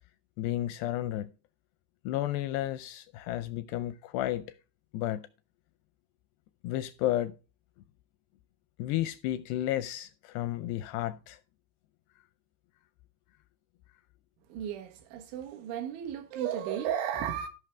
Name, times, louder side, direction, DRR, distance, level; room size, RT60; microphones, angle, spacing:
voice 1, 0.4-1.3 2.1-4.5 4.9-5.2 6.6-7.4 8.8-11.4, left 13 dB, 85° left, 2.4 m, -32 dB
voice 2, 14.5-17.5, right 9 dB, 85° right, 3.7 m, -34 dB
16.5 x 5.6 x 3.3 m
omnidirectional pair, 5.3 m